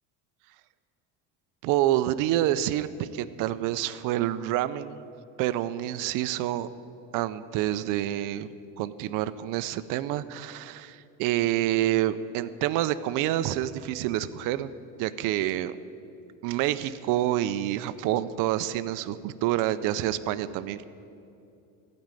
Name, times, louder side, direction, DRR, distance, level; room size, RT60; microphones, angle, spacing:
voice 1, 1.6-5.1 5.4-6.7 7.1-8.5 8.8-14.7 15.0-15.8 16.4-20.8, right 13 dB, 65° right, 14 dB, 0.6 m, -27 dB
15.0 x 5.3 x 9.0 m, 2.7 s
cardioid pair, 130°, 35 cm